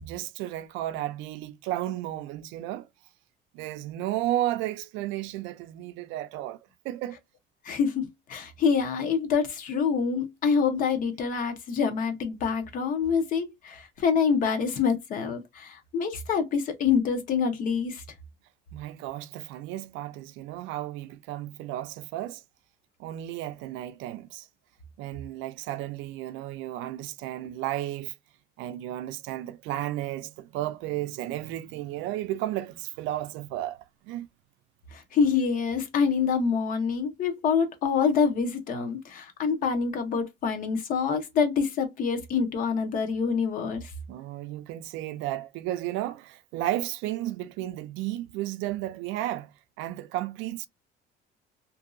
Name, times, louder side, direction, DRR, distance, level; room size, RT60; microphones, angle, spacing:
voice 1, 0.0-2.9 3.5-6.6 6.8-7.2 18.7-22.4 23.0-24.5 25.0-28.1 28.6-34.3 44.1-50.7, right 14 dB, 75° right, 0.4 m, -33 dB
voice 2, 7.6-18.0 34.9-43.9, left 6 dB, 45° left, 0.7 m, -26 dB
2.8 x 2.6 x 2.5 m
cardioid pair, 165°, 20 cm